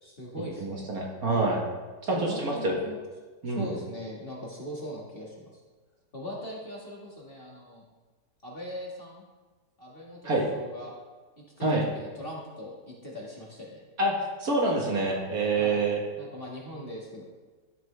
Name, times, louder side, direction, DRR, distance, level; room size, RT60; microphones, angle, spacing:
voice 1, 0.0-0.9 2.1-3.0 3.5-5.3 6.1-7.8 8.4-9.2 9.8-10.9 11.4-13.8 15.6-15.8 16.2-17.2, equal, 30° left, -4 dB, 1.7 m, -40 dB
voice 2, 0.6-1.6 2.0-2.8 3.4-3.7 10.2-10.5 11.6-11.8 14.0-16.0, right 2 dB, 55° right, -1 dB, 1.7 m, -26 dB
12.5 x 7.5 x 3.3 m, 1.3 s
omnidirectional pair, 2.0 m